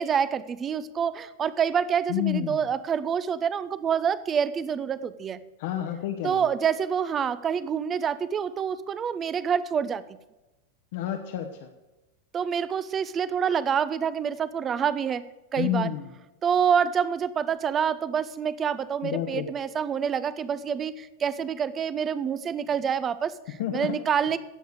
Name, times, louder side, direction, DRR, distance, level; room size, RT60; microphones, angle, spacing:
voice 1, 0.0-5.4 6.2-10.0 12.3-15.2 15.5-15.9 16.4-23.3 23.7-24.4, right 7 dB, 25° right, 16 dB, 0.7 m, -27 dB
voice 2, 2.1-2.6 5.6-6.5 10.9-11.7 15.6-16.1 19.0-19.5 23.5-24.0, left 11 dB, 50° left, 5 dB, 1.1 m, -30 dB
16.5 x 7.9 x 5.0 m, 1.0 s
figure-of-eight pair, 90°, 0 cm